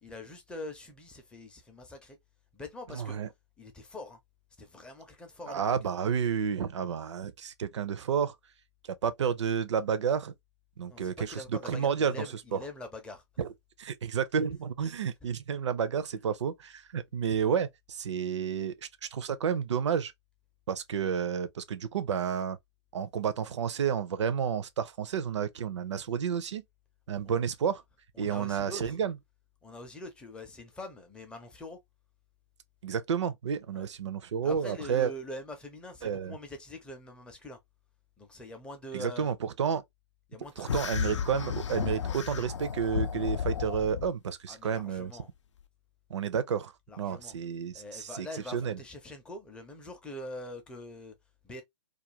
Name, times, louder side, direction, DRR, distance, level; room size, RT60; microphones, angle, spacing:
voice 1, 0.0-2.2 2.5-3.2 3.6-4.2 4.6-5.8 10.9-13.2 27.2-27.4 28.2-28.9 29.6-31.8 33.7-33.9 34.4-37.6 38.2-39.3 40.3-40.9 44.5-45.3 46.9-47.3 47.7-51.1 51.4-51.6, left 1 dB, 5° left, 0.5 m, -44 dB
voice 2, 2.9-3.3 5.5-8.4 8.8-10.3 10.8-12.6 13.4-13.5 13.8-20.1 20.7-22.6 22.9-26.6 27.1-27.8 28.2-29.2 32.8-35.1 36.0-36.4 38.9-39.8 40.6-45.1 46.1-48.8, right 7 dB, 70° right, 0.5 m, -31 dB
sound 1, 40.7-44.1, left 7 dB, 75° left, 0.4 m, -33 dB
2.4 x 2.2 x 2.8 m
hypercardioid pair, 130°, 16 cm